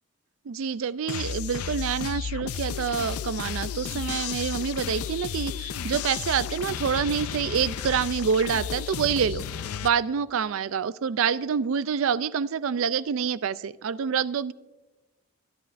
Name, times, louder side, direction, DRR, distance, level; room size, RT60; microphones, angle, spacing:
voice 1, 0.5-9.4 9.8-14.5, right 7 dB, 70° right, 17 dB, 0.4 m, -27 dB
sound 1, 1.1-9.9, left 7 dB, 90° left, 0.4 m, -33 dB
22.0 x 11.0 x 2.5 m, 1.1 s
head